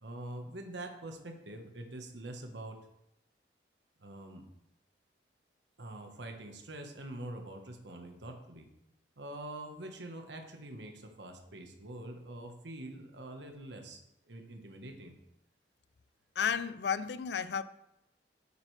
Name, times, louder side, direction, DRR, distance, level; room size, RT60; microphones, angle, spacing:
voice 1, 0.0-2.9 4.0-4.5 5.8-8.7 9.2-15.1, right 1 dB, 80° right, 4 dB, 1.4 m, -45 dB
voice 2, 16.4-17.6, left 7 dB, 70° left, 15 dB, 0.5 m, -32 dB
9.6 x 8.3 x 3.3 m, 0.83 s
head